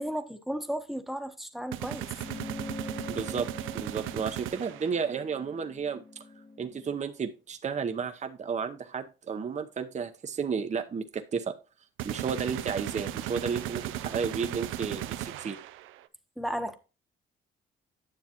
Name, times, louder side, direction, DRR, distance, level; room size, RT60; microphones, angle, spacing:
voice 1, 0.0-2.1 16.4-16.7, equal, ahead, 1.1 m, -34 dB
sound 1, 1.7-5.1 12.0-16.0, right 13 dB, 90° right, 0.6 m, -36 dB
sound 2, 2.2-7.0, left 2 dB, 20° left, 1.0 m, -43 dB
voice 2, 3.1-3.5 3.7-6.0 6.6-11.5 12.0-15.6, right 6 dB, 35° right, 0.8 m, -32 dB
9.8 x 6.8 x 2.9 m
cardioid pair, 90°, 20 cm